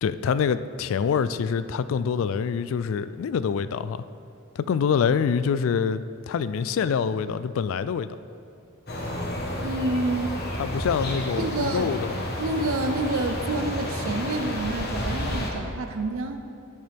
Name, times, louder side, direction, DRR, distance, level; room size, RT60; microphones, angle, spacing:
voice 1, 0.0-4.0 4.6-8.1 10.6-12.2, left 6 dB, 65° left, 14 dB, 0.3 m, -25 dB
sound 1, 8.9-15.5, left 1 dB, 50° left, 1.2 m, -30 dB
voice 2, 9.6-10.4 11.4-11.9 12.4-16.4, right 2 dB, 75° right, 7 dB, 0.6 m, -28 dB
12.5 x 6.5 x 3.5 m, 2.5 s
head